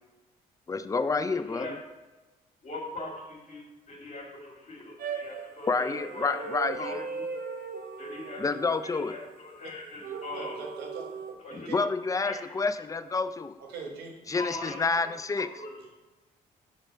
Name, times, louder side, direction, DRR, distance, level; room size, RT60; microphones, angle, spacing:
voice 1, 0.7-1.7 5.7-7.1 8.4-9.1 11.7-13.6 14.3-15.5, left 4 dB, 20° left, 12 dB, 0.4 m, -29 dB
voice 2, 1.3-1.7 2.6-7.3 8.0-8.4 8.8-10.6 11.4-11.9 12.2-12.5 14.3-15.1 15.4-15.7, left 2 dB, 50° left, -2 dB, 2.1 m, -41 dB
sound 1, 5.0-9.3 10.0-11.3, right 6 dB, 60° right, 0.6 m, -38 dB
voice 3, 10.3-11.1 11.5-11.7 13.6-14.1, right 5 dB, 85° right, 0 dB, 1.2 m, -40 dB
5.2 x 3.8 x 5.1 m, 1.2 s
supercardioid pair, 65°, 16 cm